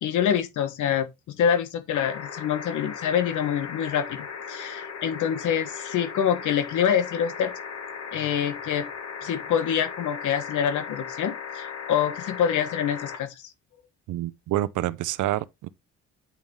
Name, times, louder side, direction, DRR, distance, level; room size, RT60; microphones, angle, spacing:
voice 1, 0.0-7.5 8.1-8.9 9.2-13.5, left 8 dB, 80° left, 1.3 m, -26 dB
sound 1, 1.9-13.2 14.6-14.7, left 6 dB, 55° left, 2.3 m, -37 dB
voice 2, 14.1-15.7, right 14 dB, 75° right, 0.6 m, -28 dB
8.8 x 5.3 x 3.2 m
cardioid pair, 90°, 30 cm